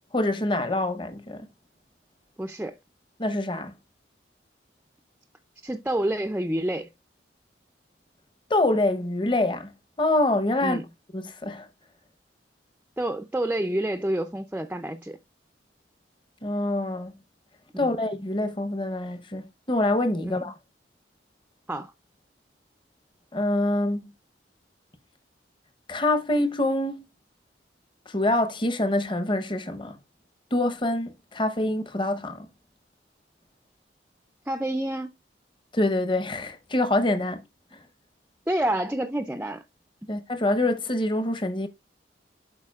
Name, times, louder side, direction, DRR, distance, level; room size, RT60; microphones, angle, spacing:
voice 1, 0.1-1.5 3.2-3.7 8.5-9.7 10.0-10.8 11.1-11.7 16.4-17.1 17.8-19.4 19.7-20.5 23.3-24.0 25.9-27.0 28.1-30.0 30.5-32.5 35.7-37.4 40.1-41.7, left 1 dB, 25° left, 0.9 m, -25 dB
voice 2, 2.4-2.8 5.6-6.9 10.6-10.8 13.0-15.2 17.8-17.9 20.2-20.4 21.7-21.9 34.5-35.2 38.5-39.6, right 1 dB, 10° right, 0.5 m, -28 dB
12.0 x 4.8 x 2.4 m
head